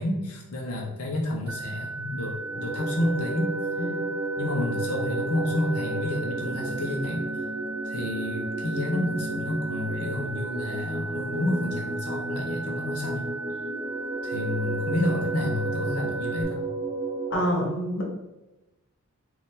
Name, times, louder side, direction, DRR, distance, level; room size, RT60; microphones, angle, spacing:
voice 1, 0.0-3.5 4.4-7.3 7.8-13.3 14.2-16.6, left 1 dB, 85° left, -1 dB, 0.7 m, -30 dB
sound 1, 1.5-16.4, right 3 dB, 70° right, 0.6 m, -36 dB
sound 2, 2.4-17.3, right 2 dB, 20° right, 0.6 m, -33 dB
voice 2, 17.3-18.0, equal, 55° left, 0 dB, 0.9 m, -26 dB
4.2 x 2.5 x 3.8 m, 1.0 s
head